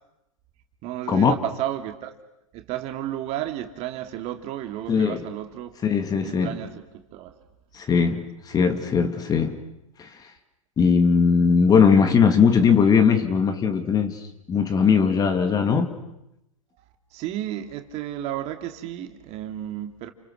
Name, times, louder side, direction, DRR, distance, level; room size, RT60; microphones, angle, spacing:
voice 1, 0.8-2.1 2.5-5.8 6.2-7.3 16.8-16.9 17.1-20.1, right 12 dB, 40° right, 2.7 m, -32 dB
voice 2, 4.9-5.2 5.8-6.6 7.7-9.6 10.0-10.3 10.8-15.9, left 6 dB, 20° left, 2.4 m, -20 dB
30.0 x 29.0 x 6.5 m
hypercardioid pair, 110°, 17 cm